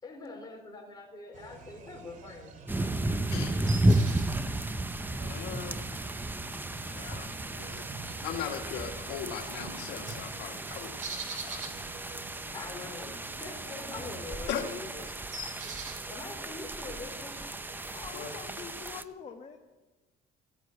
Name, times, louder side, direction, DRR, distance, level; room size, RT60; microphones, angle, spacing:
voice 1, 0.0-3.0 12.5-14.9 16.1-17.3, left 3 dB, 25° left, 1 dB, 4.5 m, -44 dB
sound 1, 1.3-18.6, right 3 dB, 50° right, 2.4 m, -46 dB
sound 2, 2.7-19.0, right 1 dB, 10° right, 0.6 m, -33 dB
voice 2, 3.3-3.7 5.2-5.9 6.8-7.8 8.2-11.6 14.5-14.6 18.1-18.3, left 9 dB, 85° left, 3 dB, 1.5 m, -39 dB
voice 3, 17.9-19.6, left 6 dB, 40° left, 4 dB, 1.2 m, -45 dB
16.0 x 10.0 x 7.7 m, 1.2 s
cardioid pair, 110°, 17 cm